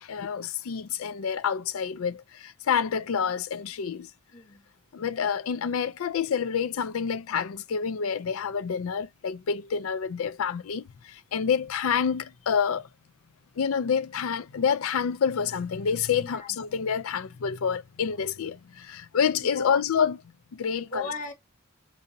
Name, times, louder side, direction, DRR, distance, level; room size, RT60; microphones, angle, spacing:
voice 1, 0.0-4.1 4.9-12.9 13.6-20.2 20.5-21.0, left 7 dB, 75° left, 0.4 m, -28 dB
voice 2, 4.3-4.6 16.2-16.5 19.5-19.9 20.8-21.3, left 2 dB, 40° left, 0.9 m, -37 dB
2.6 x 2.6 x 3.8 m
head